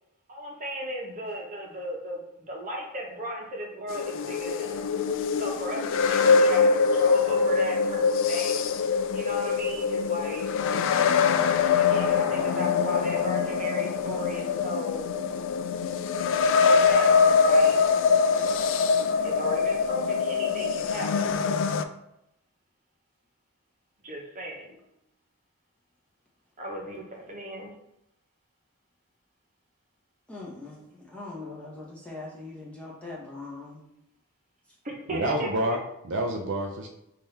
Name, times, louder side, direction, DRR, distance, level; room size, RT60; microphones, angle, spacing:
voice 1, 0.3-4.8 5.4-8.6 9.1-10.5 11.8-15.2 16.6-17.8 19.2-21.4 24.0-24.7 26.6-27.8 34.8-35.8, equal, 35° right, -1 dB, 1.1 m, -36 dB
sound 1, 3.9-21.8, left 5 dB, 60° left, 0.3 m, -23 dB
voice 2, 12.2-13.4 24.7-24.8 30.3-33.8, left 2 dB, 5° left, -6 dB, 1.2 m, -41 dB
voice 3, 35.1-36.9, right 1 dB, 55° right, 1 dB, 0.5 m, -28 dB
5.4 x 2.8 x 3.4 m, 0.81 s
head